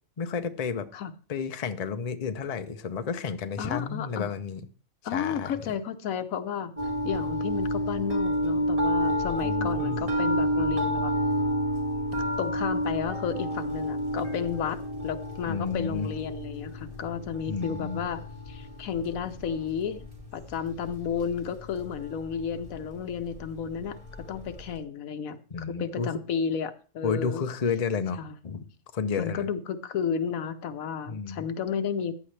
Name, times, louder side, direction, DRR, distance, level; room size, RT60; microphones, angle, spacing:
voice 1, 0.2-0.9 1.3-4.6 5.1-5.5 9.4-10.0 15.5-16.1 17.5-18.0 25.5-26.1 27.0-28.6 28.9-29.4 31.1-31.4, left 5 dB, 35° left, 9 dB, 0.7 m, -31 dB
voice 2, 3.6-4.3 5.0-6.7 7.0-11.1 12.4-18.2 18.5-20.1 20.3-24.0 24.3-27.4 28.2-28.4 29.2-32.2, left 7 dB, 90° left, 10 dB, 1.3 m, -32 dB
sound 1, 6.8-24.8, equal, 25° right, 2.3 m, -31 dB
14.5 x 9.6 x 3.3 m, 0.39 s
omnidirectional pair, 1.4 m